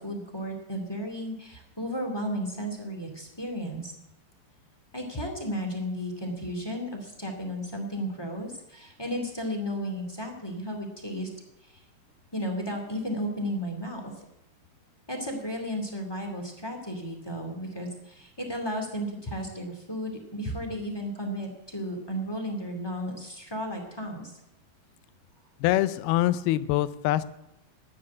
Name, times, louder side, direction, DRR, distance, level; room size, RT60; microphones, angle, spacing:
voice 1, 0.0-3.9 4.9-11.3 11.6-11.7 12.3-14.0 15.1-24.3, equal, 10° left, 2 dB, 1.4 m, -34 dB
voice 2, 25.6-27.2, left 14 dB, 80° left, 14 dB, 2.5 m, -24 dB
12.5 x 10.0 x 8.5 m, 0.84 s
omnidirectional pair, 4.8 m